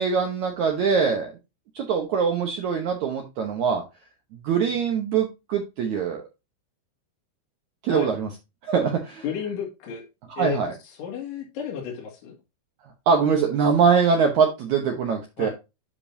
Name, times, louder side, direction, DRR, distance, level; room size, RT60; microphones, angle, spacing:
voice 1, 0.0-1.3 1.8-3.8 4.4-6.2 7.8-8.3 8.6-9.2 10.4-10.7 13.1-15.5, right 6 dB, 70° right, 3 dB, 1.8 m, -23 dB
voice 2, 9.2-10.1 10.4-12.4 15.4-15.5, left 7 dB, 85° left, -1 dB, 3.9 m, -32 dB
10.0 x 5.3 x 2.7 m, 0.26 s
omnidirectional pair, 4.6 m